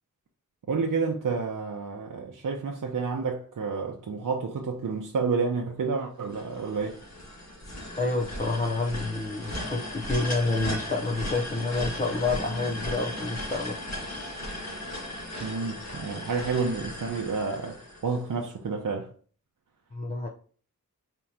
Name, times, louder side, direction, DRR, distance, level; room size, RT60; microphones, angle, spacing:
voice 1, 0.7-7.0 15.4-19.1, right 4 dB, 75° right, 0.7 m, -30 dB
sound 1, 6.3-18.4, left 1 dB, 55° left, 1.8 m, -36 dB
voice 2, 8.0-13.8 19.9-20.3, left 3 dB, 25° left, 0.7 m, -28 dB
4.4 x 2.9 x 3.7 m
wide cardioid pair, 55°, 32 cm